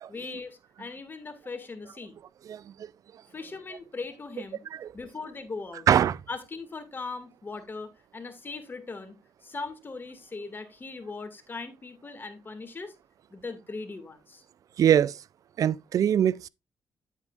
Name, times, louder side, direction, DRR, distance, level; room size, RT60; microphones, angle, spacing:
voice 1, 0.1-2.2 3.3-4.6 4.9-5.9 6.3-9.1 9.4-12.9 13.3-14.4, left 3 dB, 30° left, 2.0 m, -39 dB
voice 2, 2.5-2.9 4.7-4.9 5.9-6.2 14.8-15.2 15.6-16.5, right 9 dB, 65° right, 0.4 m, -23 dB
8.9 x 8.1 x 2.4 m
cardioid pair, 75°, 6 cm